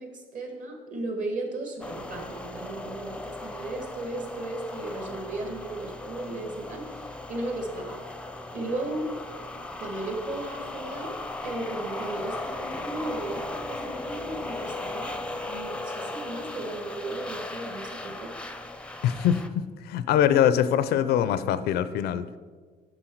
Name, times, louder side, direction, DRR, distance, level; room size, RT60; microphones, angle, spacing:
voice 1, 0.0-8.0 8.5-9.2 9.8-15.2 15.5-18.3, right 2 dB, 50° right, 3 dB, 1.7 m, -35 dB
sound 1, 1.8-19.5, left 2 dB, 5° left, 0.5 m, -37 dB
voice 2, 19.0-22.3, left 10 dB, 70° left, 14 dB, 0.4 m, -23 dB
7.9 x 6.3 x 4.5 m, 1.5 s
cardioid pair, 110°, 17 cm